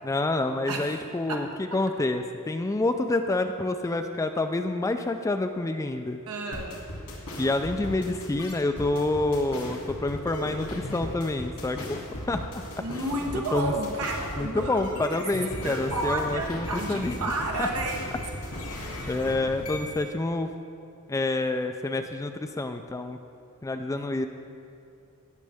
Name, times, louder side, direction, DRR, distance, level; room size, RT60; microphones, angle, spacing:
voice 1, 0.0-1.5 1.7-6.2 7.3-12.0 12.3-12.6 13.3-13.7 14.4-17.2 17.6-17.7 19.1-20.5 21.1-23.2 23.6-24.3, left 2 dB, 15° left, 7 dB, 0.3 m, -28 dB
voice 2, 0.7-1.0 1.3-1.8 6.3-6.8 12.8-15.3 15.6-18.2 18.8-19.1 23.9-24.1, right 2 dB, 85° right, 0 dB, 1.2 m, -32 dB
sound 1, 6.5-20.0, left 1 dB, 85° left, 2.6 m, -37 dB
18.0 x 6.4 x 3.5 m, 2.6 s
head